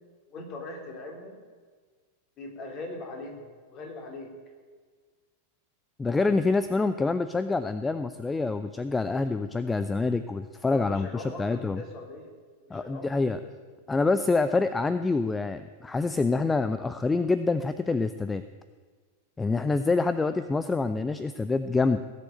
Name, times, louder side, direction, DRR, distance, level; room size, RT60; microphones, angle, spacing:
voice 1, 0.3-1.4 2.4-4.3 10.7-12.3 12.7-13.5, left 2 dB, 35° left, 1 dB, 3.4 m, -41 dB
voice 2, 6.0-11.8 12.7-13.4 13.9-18.4 19.4-22.0, left 3 dB, 10° left, 11 dB, 0.5 m, -26 dB
17.5 x 7.0 x 8.8 m, 1.5 s
figure-of-eight pair, 90°, 0 cm